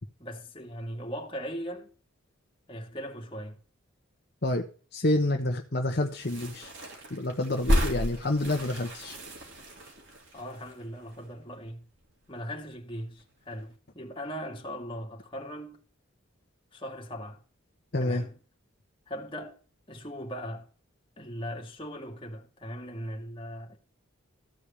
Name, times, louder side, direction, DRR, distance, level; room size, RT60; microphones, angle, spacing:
voice 1, 0.2-1.9 2.7-3.6 10.3-11.9 12.3-15.8 16.7-17.4 18.0-18.4 19.1-19.6 19.9-20.7 21.2-23.8, equal, 25° left, 2.2 m, -39 dB
voice 2, 4.9-6.7 7.1-9.2 17.9-18.2, left 1 dB, 50° left, 1.2 m, -28 dB
sound 1, 6.1-11.7 12.0-12.1 12.3-13.2 13.5-13.7, equal, 60° right, 3.6 m, -33 dB
14.5 x 5.0 x 8.6 m
head